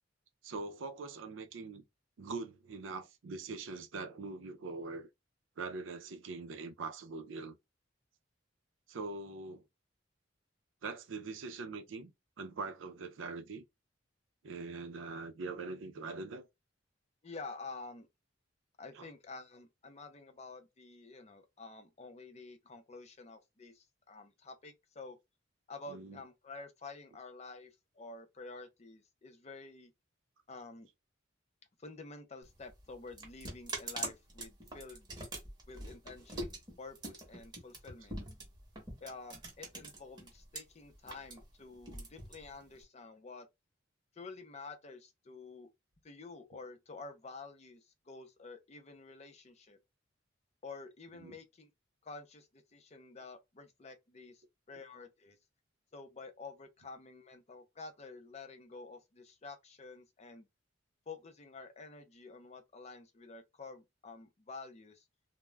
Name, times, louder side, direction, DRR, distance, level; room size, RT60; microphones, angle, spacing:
voice 1, 0.4-1.8 2.2-5.1 5.6-7.6 8.9-9.6 10.8-12.1 12.4-13.6 14.4-16.5 18.9-19.1 25.9-26.2 51.1-51.4, right 3 dB, 85° right, 0.5 m, -42 dB
voice 2, 17.2-18.1 18.8-25.2 25.7-29.9 30.5-30.9 31.8-35.1 35.7-38.2 39.0-43.5 44.2-45.7 46.0-49.8 50.6-51.7 52.0-55.4 55.9-60.5 61.1-65.0, left 3 dB, 35° left, 0.5 m, -49 dB
sound 1, 32.4-40.6 40.9-42.8, right 2 dB, 25° right, 0.9 m, -44 dB
2.3 x 2.0 x 3.2 m
head